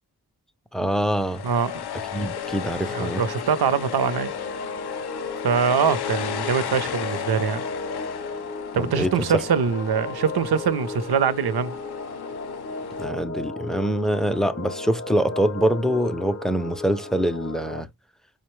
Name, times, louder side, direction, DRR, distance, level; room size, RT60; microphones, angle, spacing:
voice 1, 0.7-1.4 2.1-3.2 8.7-9.4 13.0-17.9, right 1 dB, ahead, 0.3 m, -24 dB
sound 1, 1.1-13.0, left 9 dB, 75° left, 0.5 m, -35 dB
sound 2, 2.4-17.8, left 3 dB, 40° left, 0.7 m, -35 dB
voice 2, 2.9-4.3 5.4-7.6 8.7-11.8, right 7 dB, 75° right, 0.6 m, -23 dB
5.0 x 2.1 x 3.0 m
wide cardioid pair, 100°, 39 cm